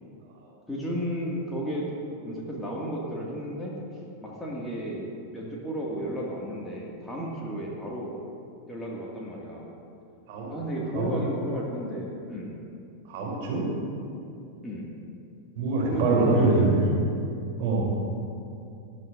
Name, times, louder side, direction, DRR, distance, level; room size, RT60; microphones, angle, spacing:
voice 1, 0.7-1.9 2.2-3.7 4.2-8.2 8.7-9.7 10.5-12.5 14.6-14.9 15.8-16.8, equal, 5° left, -5 dB, 2.0 m, -33 dB
voice 2, 13.1-13.6 15.6-16.8 17.6-17.8, right 3 dB, 50° right, -3 dB, 3.2 m, -24 dB
19.0 x 11.0 x 2.6 m, 2.5 s
figure-of-eight pair, 90°, 0 cm